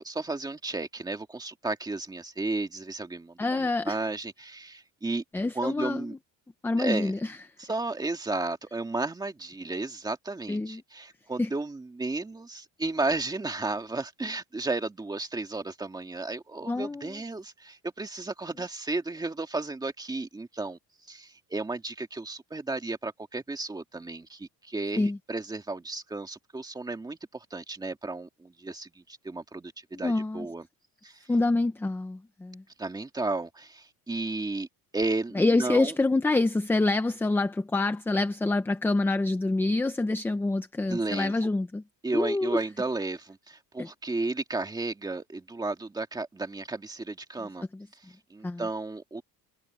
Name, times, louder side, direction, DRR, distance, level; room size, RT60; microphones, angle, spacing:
voice 1, 0.0-5.2 5.5-6.2 6.8-7.1 7.6-20.8 21.1-30.7 31.0-31.3 32.8-34.7 34.9-36.0 40.9-41.4 42.0-47.7 47.9-49.2, right 3 dB, 10° right, 2.1 m, -33 dB
voice 2, 3.4-4.0 5.3-6.1 6.6-7.2 10.5-10.8 11.4-11.5 16.7-17.2 25.0-25.2 29.9-30.5 31.3-32.6 35.4-41.8 42.1-42.6 43.8-43.9 47.7-47.9 48.4-48.6, left 2 dB, 5° left, 0.5 m, -26 dB
cardioid pair, 170°, 37 cm